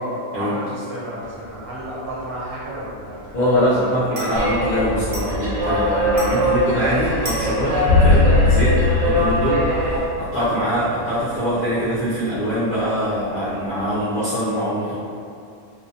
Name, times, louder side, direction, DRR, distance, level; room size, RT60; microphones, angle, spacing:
voice 1, 0.0-3.4 3.8-3.9, right 1 dB, 85° right, -7 dB, 1.3 m, -31 dB
sound 1, 1.2-14.0, right 1 dB, 40° right, 0.4 m, -40 dB
voice 2, 3.3-14.9, equal, 55° left, -13 dB, 0.5 m, -23 dB
sound 2, 4.3-10.0, equal, 65° right, 0.9 m, -22 dB
sound 3, 7.9-10.5, left 3 dB, 70° left, 1.0 m, -18 dB
2.6 x 2.2 x 2.5 m, 2.4 s
omnidirectional pair, 1.6 m